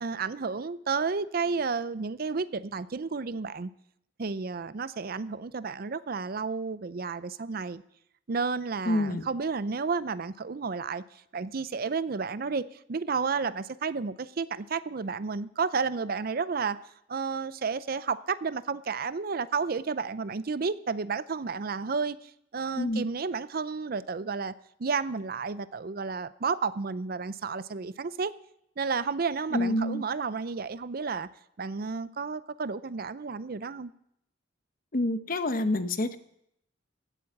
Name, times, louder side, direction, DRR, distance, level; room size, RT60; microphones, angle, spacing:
voice 1, 0.0-3.7 4.2-7.8 8.3-11.0 11.3-16.8 17.1-24.5 24.8-28.3 28.8-31.3 31.6-33.9, right 5 dB, 50° right, 16 dB, 0.5 m, -31 dB
voice 2, 8.9-9.2 22.8-23.0 29.5-30.0 34.9-36.2, left 1 dB, 50° left, 11 dB, 0.9 m, -27 dB
16.5 x 8.7 x 7.2 m, 0.76 s
head